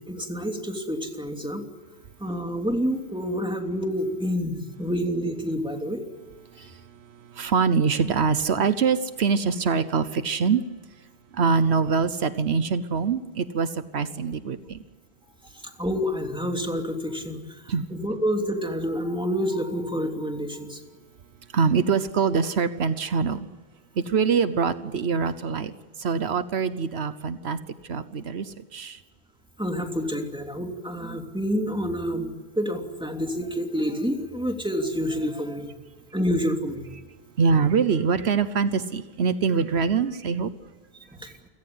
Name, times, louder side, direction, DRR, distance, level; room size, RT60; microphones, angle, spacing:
voice 1, 0.1-1.7 2.2-6.0 15.8-17.4 17.9-20.8 29.6-35.7 36.1-36.8 41.2-41.3, equal, 5° right, 3 dB, 3.0 m, -28 dB
voice 2, 7.3-10.6 11.3-14.8 17.7-17.8 21.5-23.5 24.0-25.7 26.0-27.6 27.9-29.0 37.4-40.5, right 5 dB, 80° right, 12 dB, 1.2 m, -24 dB
28.5 x 17.5 x 9.7 m, 1.4 s
omnidirectional pair, 1.1 m